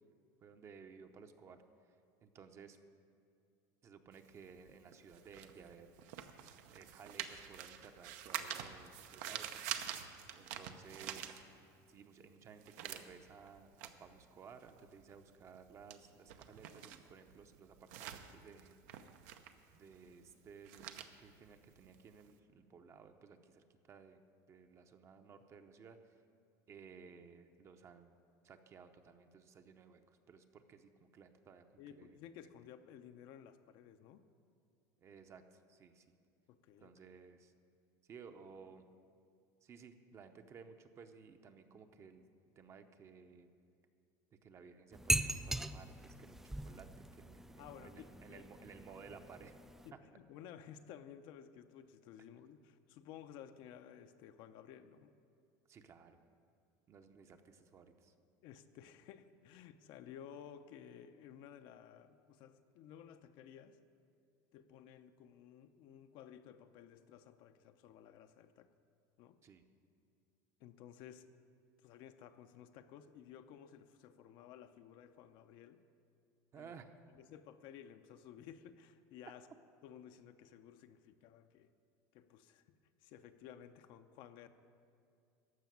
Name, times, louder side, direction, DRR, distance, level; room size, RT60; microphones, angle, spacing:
voice 1, 0.4-1.6 2.2-2.8 3.8-6.2 6.7-10.1 10.3-11.4 11.9-18.8 19.7-24.2 24.5-26.0 26.7-28.1 28.4-30.0 30.3-31.6 31.9-32.2 35.0-36.0 36.8-37.5 38.1-38.9 39.6-42.2 42.6-43.5 44.4-46.9 47.1-49.5 55.7-56.2 56.9-58.1 69.4-69.6 76.5-76.9, right 6 dB, 30° right, 7 dB, 0.8 m, -57 dB
sound 1, 4.1-11.9 12.2-22.3, right 10 dB, 75° right, 0.8 m, -47 dB
voice 2, 31.8-34.2 36.5-36.9 47.6-48.5 49.8-55.1 58.4-63.8 64.5-68.7 69.2-69.4 70.6-71.4 71.8-75.8 76.6-76.7 77.1-79.5 79.8-81.7 82.1-84.5, left 9 dB, 60° left, 9 dB, 0.7 m, -55 dB
sound 2, 44.9-49.9, right 1 dB, 5° right, 0.3 m, -40 dB
14.0 x 5.8 x 9.4 m, 2.4 s
supercardioid pair, 135°, 9 cm